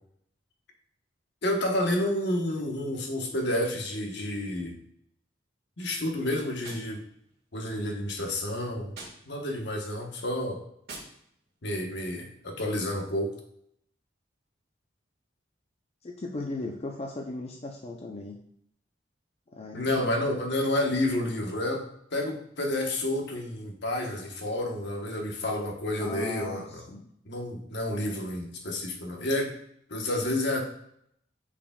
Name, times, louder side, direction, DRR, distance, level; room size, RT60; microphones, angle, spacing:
voice 1, 1.4-4.8 5.8-7.0 7.5-8.9 9.3-10.6 11.6-13.3 19.7-21.8 22.1-26.8 27.2-29.5 29.9-30.6, left 1 dB, 65° left, 2 dB, 1.1 m, -30 dB
Gunshot gunfire, 6.6-7.7 8.9-9.7 10.8-11.7, right 3 dB, 60° right, 1.7 m, -47 dB
voice 2, 16.0-18.4 19.5-20.0 26.0-27.1, left 2 dB, 35° left, 1 dB, 0.5 m, -37 dB
8.7 x 4.9 x 2.3 m, 0.71 s
head